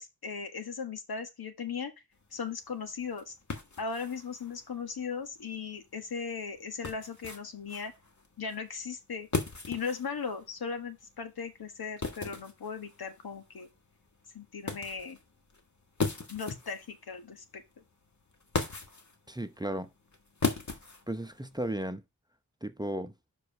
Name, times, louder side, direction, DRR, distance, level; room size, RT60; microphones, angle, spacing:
voice 1, 0.0-1.9 2.3-3.3 3.8-7.9 8.4-9.3 9.7-13.7 14.3-15.2 16.3-17.6, left 5 dB, 85° left, 1.5 m, -38 dB
sound 1, 2.1-21.7, left 4 dB, 50° left, 1.8 m, -39 dB
voice 2, 19.3-19.9 21.1-22.0 22.6-23.1, right 1 dB, 10° right, 0.7 m, -34 dB
5.5 x 4.9 x 5.9 m
cardioid pair, 60°, 36 cm